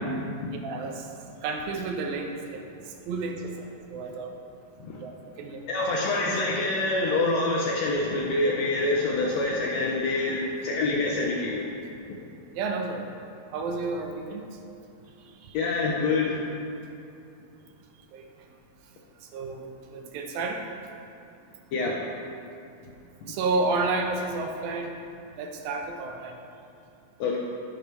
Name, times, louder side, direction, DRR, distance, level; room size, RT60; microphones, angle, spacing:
voice 1, 0.6-1.1 1.4-2.7 3.1-3.5 3.9-4.3 5.0-5.6 12.5-13.0 13.5-14.4 15.4-15.5 18.1-18.2 19.3-20.6 23.3-24.9 25.4-26.3, right 3 dB, 85° right, 3 dB, 2.4 m, -31 dB
voice 2, 5.7-11.7 15.5-16.4 21.7-22.0 27.2-27.4, left 2 dB, 85° left, -2 dB, 1.5 m, -26 dB
14.0 x 6.4 x 3.4 m, 2.6 s
omnidirectional pair, 4.1 m